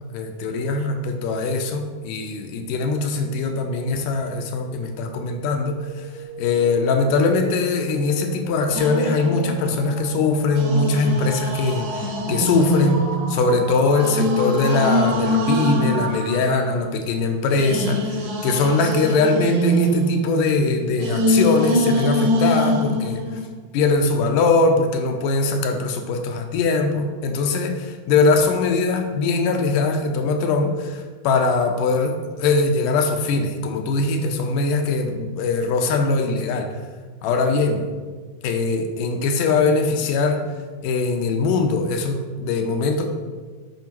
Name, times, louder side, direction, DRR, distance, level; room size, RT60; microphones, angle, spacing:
voice 1, 0.1-23.4 23.7-36.8 37.2-37.8 38.4-40.5 40.8-43.1, left 3 dB, 80° left, 5 dB, 2.3 m, -21 dB
sound 1, 3.3-16.4, right 4 dB, 85° right, 2.6 m, -35 dB
sound 2, 8.7-10.0 10.6-17.0 17.5-23.5, equal, 65° right, 2.4 m, -24 dB
8.3 x 5.5 x 4.5 m, 1.4 s
omnidirectional pair, 3.9 m